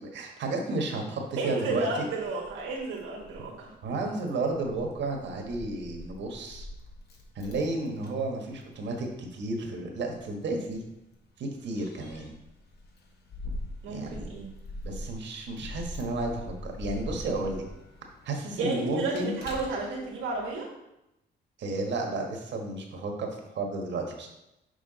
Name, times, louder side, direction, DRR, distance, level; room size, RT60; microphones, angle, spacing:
voice 1, 0.0-2.1 3.8-6.7 7.3-10.8 11.4-12.3 13.9-14.3 14.8-17.6 18.2-19.3 21.6-24.3, right 2 dB, 65° right, 2 dB, 1.3 m, -32 dB
voice 2, 1.4-3.7 13.8-14.5 18.6-20.7, right 3 dB, 80° right, -3 dB, 1.5 m, -32 dB
Keys jangling, 1.5-20.5, left 1 dB, 55° left, 1.4 m, -44 dB
6.6 x 4.9 x 3.9 m, 0.90 s
cardioid pair, 90°, 20 cm